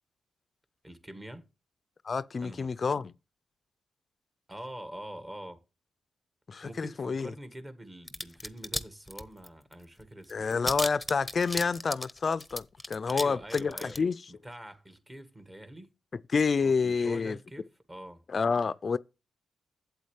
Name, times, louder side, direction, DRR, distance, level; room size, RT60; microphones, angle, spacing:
voice 1, 0.8-1.4 2.4-2.7 4.5-5.6 6.6-10.5 13.1-14.0 14.3-15.9 16.6-18.2, right 1 dB, 25° right, 1.7 m, -45 dB
voice 2, 2.0-3.1 6.5-7.3 10.3-14.2 16.3-17.4 18.3-19.0, left 5 dB, 50° left, 0.3 m, -28 dB
sound 1, 8.1-8.8 9.1-9.7 10.0-10.1 10.3-13.2 13.5-14.0, left 1 dB, 5° left, 0.9 m, -34 dB
8.1 x 8.1 x 3.2 m
supercardioid pair, 50°, 0 cm